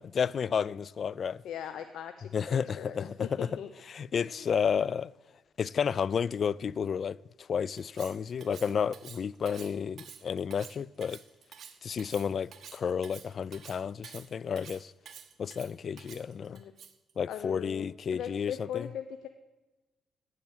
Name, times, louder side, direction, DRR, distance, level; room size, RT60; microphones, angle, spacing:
voice 1, 0.0-1.4 2.3-3.5 3.9-5.1 5.6-11.2 11.8-14.9 15.4-16.6 17.2-18.9, left 7 dB, 50° left, 0.3 m, -31 dB
voice 2, 1.4-3.7 4.1-4.5 16.5-16.7 17.3-19.3, left 9 dB, 75° left, 0.7 m, -40 dB
Cutlery silverware, 7.8-17.1, right 7 dB, 60° right, 1.1 m, -50 dB
10.5 x 9.5 x 7.9 m
cardioid pair, 90°, 0 cm